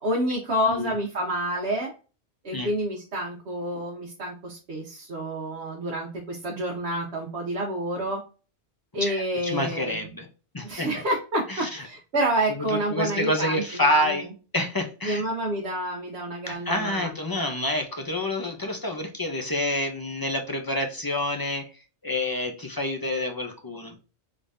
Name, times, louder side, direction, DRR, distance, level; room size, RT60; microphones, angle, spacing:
voice 1, 0.0-1.9 2.4-8.2 8.9-10.1 10.6-14.3 15.0-17.4, right 1 dB, 60° right, -2 dB, 1.1 m, -29 dB
voice 2, 9.0-10.3 10.5-10.9 11.5-11.7 12.9-14.3 14.5-15.2 16.5-21.7 22.0-24.0, left 1 dB, 30° left, 3 dB, 0.4 m, -28 dB
3.6 x 3.3 x 2.5 m, 0.35 s
omnidirectional pair, 1.3 m